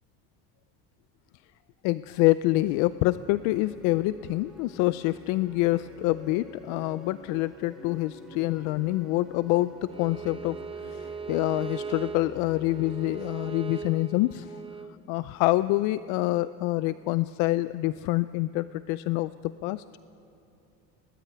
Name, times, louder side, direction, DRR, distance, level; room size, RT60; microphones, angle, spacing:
voice 1, 1.8-10.6 10.8-14.6 15.1-19.8, left 18 dB, 60° left, 15 dB, 0.5 m, -26 dB
sound 1, 2.3-15.0, right 1 dB, ahead, 2.4 m, -48 dB
Bowed string instrument, 9.9-14.9, right 5 dB, 15° right, 0.8 m, -39 dB
25.0 x 19.5 x 9.5 m, 2.8 s
cardioid pair, 160°, 33 cm